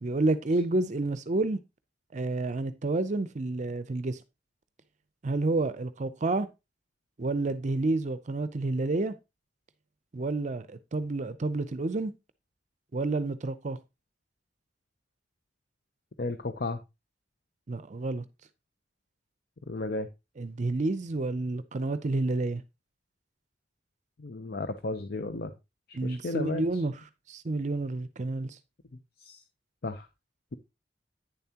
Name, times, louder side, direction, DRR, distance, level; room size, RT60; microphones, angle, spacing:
voice 1, 0.0-1.6 2.1-4.2 5.2-6.5 7.2-9.1 10.1-12.1 12.9-13.8 17.7-18.2 20.4-22.6 25.9-26.9 27.3-28.6, right 2 dB, 45° right, 0.5 m, -29 dB
voice 2, 16.2-16.8 19.7-20.1 24.2-25.5 25.9-26.8 29.2-29.4 29.8-30.1, left 2 dB, 60° left, 0.7 m, -34 dB
9.3 x 7.1 x 2.9 m
head